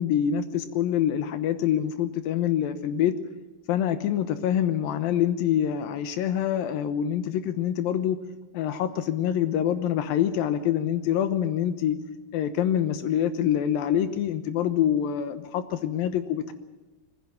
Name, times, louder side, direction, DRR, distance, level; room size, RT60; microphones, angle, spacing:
voice 1, 0.0-3.1 3.7-8.2 8.5-12.0 12.3-16.5, left 10 dB, 75° left, 11 dB, 2.8 m, -25 dB
20.0 x 15.5 x 8.9 m, 1.1 s
omnidirectional pair, 4.2 m